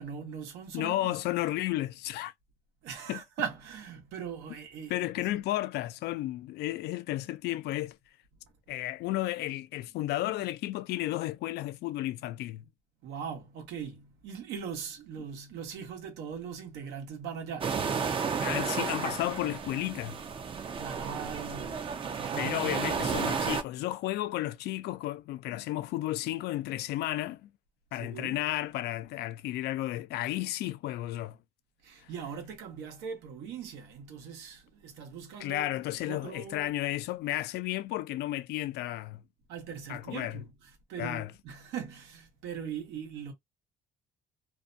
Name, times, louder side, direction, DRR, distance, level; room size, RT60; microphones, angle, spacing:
voice 1, 0.0-1.2 2.8-5.1 13.0-17.8 20.8-23.0 27.9-28.4 31.8-36.7 39.5-43.3, right 7 dB, 85° right, 1.0 m, -40 dB
voice 2, 0.7-2.3 3.1-3.2 4.9-8.0 8.7-12.7 18.4-20.2 22.4-27.5 27.9-31.4 35.4-39.2 39.9-40.4 41.0-41.3, left 15 dB, 75° left, 0.4 m, -33 dB
sound 1, 17.6-23.6, right 6 dB, 30° right, 0.5 m, -32 dB
2.6 x 2.2 x 2.5 m
cardioid pair, 110°, 17 cm